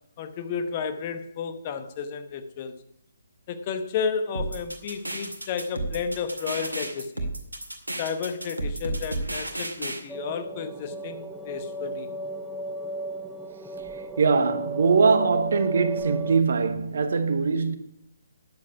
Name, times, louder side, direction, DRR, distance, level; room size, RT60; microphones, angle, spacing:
voice 1, 0.2-2.7 3.5-7.3 8.0-12.1, left 6 dB, 35° left, 1.0 m, -32 dB
sound 1, 4.3-10.0, right 2 dB, 90° right, 2.2 m, -32 dB
sound 2, 10.1-16.4, right 3 dB, 5° right, 0.7 m, -35 dB
voice 2, 14.2-17.8, right 4 dB, 60° right, 1.3 m, -22 dB
10.5 x 7.6 x 5.9 m
figure-of-eight pair, 140°, 0 cm